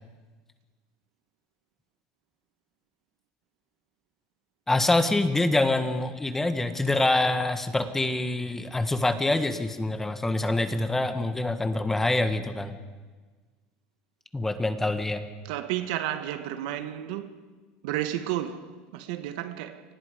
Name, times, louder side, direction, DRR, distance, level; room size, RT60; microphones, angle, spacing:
voice 1, 4.7-12.8 14.3-15.2, left 2 dB, 10° left, 1.5 m, -25 dB
voice 2, 15.5-17.3 17.8-19.8, right 12 dB, 80° right, 1.7 m, -32 dB
30.0 x 25.0 x 5.2 m
cardioid pair, 155°, 4 cm